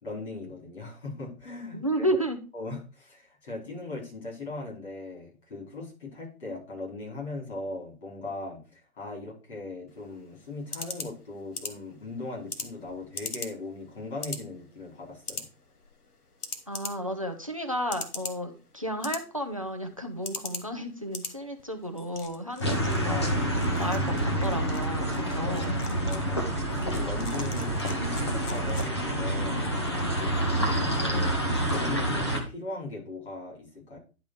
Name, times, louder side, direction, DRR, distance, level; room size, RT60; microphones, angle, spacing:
voice 1, 0.0-2.1 2.5-15.5 25.4-29.9 30.2-34.0, left 2 dB, 45° left, -2 dB, 4.5 m, -39 dB
voice 2, 1.7-2.4 16.7-23.5 23.8-25.8, equal, 25° right, 7 dB, 0.5 m, -32 dB
sound 1, 9.9-29.3, left 3 dB, 85° left, 1.4 m, -42 dB
sound 2, 22.6-32.4, right 1 dB, 20° left, 0.7 m, -28 dB
10.5 x 3.6 x 4.8 m, 0.33 s
figure-of-eight pair, 150°, 44 cm